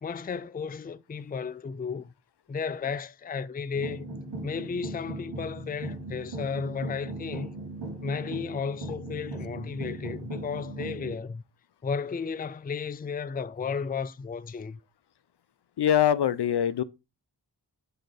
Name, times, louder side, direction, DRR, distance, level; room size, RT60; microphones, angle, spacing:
voice 1, 0.0-2.1 2.5-4.0 4.4-7.5 8.0-11.4 11.8-14.8, left 5 dB, 20° left, 0.4 m, -33 dB
sound 1, 3.7-11.1, right 1 dB, 80° right, 3.0 m, -38 dB
voice 2, 15.8-16.8, left 10 dB, 70° left, 0.6 m, -23 dB
9.1 x 4.1 x 5.0 m
wide cardioid pair, 80°, 41 cm